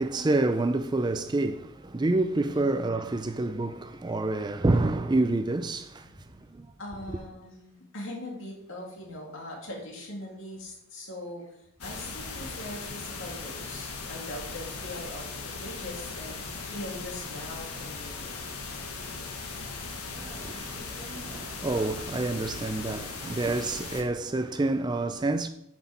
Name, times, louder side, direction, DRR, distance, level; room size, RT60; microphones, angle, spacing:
voice 1, 0.0-6.7 20.1-25.5, right 2 dB, 20° right, 0.4 m, -28 dB
voice 2, 6.8-18.3, left 1 dB, 60° left, 2.6 m, -41 dB
sound 1, 11.8-24.0, left 4 dB, 90° left, 1.5 m, -38 dB
11.0 x 6.1 x 4.3 m
head